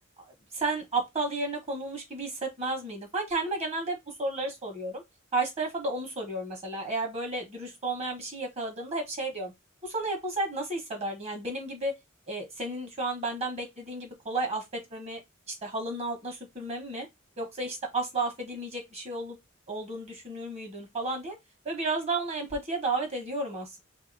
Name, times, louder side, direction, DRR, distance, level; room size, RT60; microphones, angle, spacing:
voice 1, 0.5-5.0 5.3-9.5 9.8-11.9 12.3-15.2 15.5-17.1 17.4-19.4 19.7-21.3 21.6-23.8, right 2 dB, 35° right, 1.2 m, -32 dB
2.8 x 2.8 x 4.0 m
head